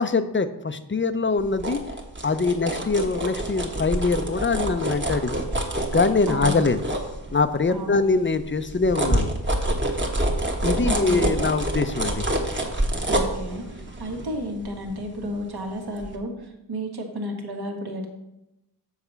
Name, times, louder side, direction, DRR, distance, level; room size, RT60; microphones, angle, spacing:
voice 1, 0.0-1.8 2.2-5.4 5.9-6.8 7.3-9.3 10.6-12.3, left 4 dB, 30° left, 11 dB, 0.6 m, -23 dB
sound 1, 1.4-7.7 8.1-15.6 16.0-16.1, right 1 dB, 25° right, 1.3 m, -27 dB
voice 2, 6.3-6.6 7.7-8.0 10.8-11.3 13.1-18.1, equal, 65° right, 2 dB, 1.7 m, -32 dB
7.2 x 4.3 x 6.8 m, 0.90 s
wide cardioid pair, 75°, 42 cm